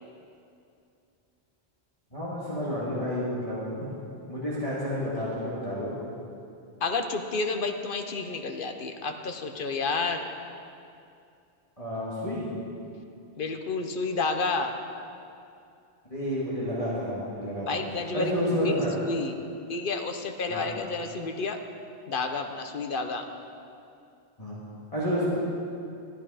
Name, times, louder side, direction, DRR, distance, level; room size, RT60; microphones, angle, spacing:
voice 1, 2.1-3.7 4.3-5.9 11.8-12.4 16.1-17.8 18.1-18.9 20.5-20.6 24.4-24.6 24.9-25.3, equal, 30° left, -8 dB, 2.1 m, -30 dB
voice 2, 6.8-10.3 13.4-14.8 17.6-19.3 19.7-21.6 22.1-23.3, left 3 dB, 55° left, 6 dB, 0.9 m, -30 dB
13.0 x 10.5 x 4.9 m, 2.6 s
omnidirectional pair, 1.1 m